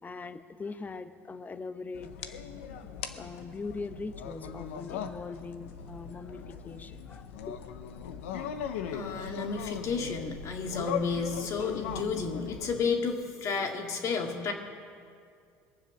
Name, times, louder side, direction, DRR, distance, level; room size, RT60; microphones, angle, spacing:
voice 1, 0.0-2.1 2.8-7.6, left 4 dB, 25° left, 11 dB, 0.9 m, -41 dB
sound 1, 1.9-12.8, left 8 dB, 85° left, 0.8 m, -39 dB
voice 2, 8.9-14.5, left 5 dB, 55° left, 3 dB, 2.1 m, -32 dB
22.0 x 7.5 x 6.5 m, 2.3 s
hypercardioid pair, 80°, 7 cm